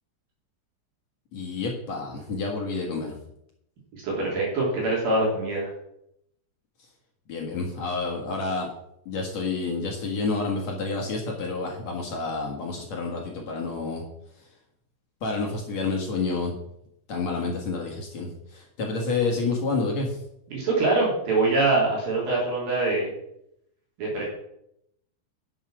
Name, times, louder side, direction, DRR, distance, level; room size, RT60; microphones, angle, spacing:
voice 1, 1.3-3.2 7.3-8.7 9.1-14.0 15.2-16.5 17.1-20.2, left 3 dB, 60° left, 0 dB, 1.8 m, -29 dB
voice 2, 3.9-5.7 20.5-23.1 24.0-24.2, right 2 dB, 55° right, -4 dB, 4.5 m, -24 dB
9.8 x 7.2 x 6.1 m, 0.78 s
omnidirectional pair, 5.2 m